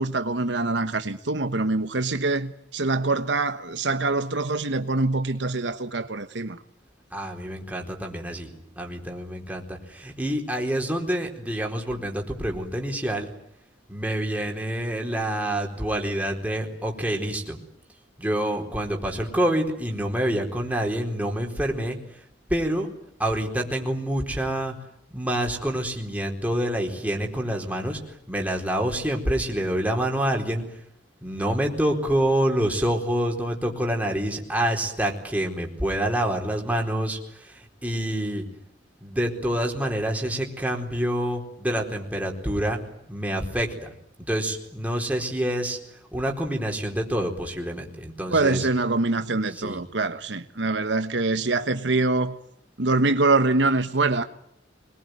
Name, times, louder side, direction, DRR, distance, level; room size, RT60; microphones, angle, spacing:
voice 1, 0.0-6.6 48.3-52.4 52.8-54.2, right 3 dB, 75° right, 1.3 m, -24 dB
voice 2, 7.1-8.5 8.8-13.3 13.9-17.6 18.2-22.0 22.5-22.9 23.2-24.8 25.1-28.0 28.3-30.6 31.2-38.4 39.0-42.8 43.1-43.9 44.3-45.8 46.1-48.7 49.6-49.8, right 1 dB, 10° right, 4.3 m, -27 dB
25.0 x 21.5 x 9.5 m
head